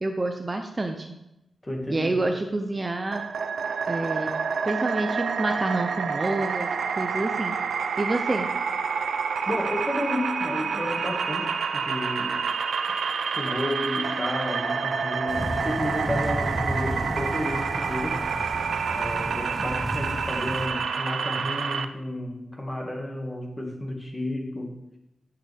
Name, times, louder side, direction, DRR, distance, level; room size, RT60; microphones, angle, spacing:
voice 1, 0.0-1.1 1.9-3.2 3.9-4.3 4.6-6.7 7.0-7.6 8.0-8.5, right 2 dB, 25° right, 5 dB, 0.7 m, -28 dB
voice 2, 1.6-2.3 9.5-12.4 13.3-18.2 18.9-24.8, left 1 dB, 15° left, 0 dB, 2.0 m, -32 dB
sound 1, 3.1-21.9, right 5 dB, 80° right, 0.6 m, -28 dB
sound 2, 15.3-20.7, equal, 5° right, 1.1 m, -33 dB
14.5 x 6.8 x 3.5 m, 0.90 s
wide cardioid pair, 115°, 0 cm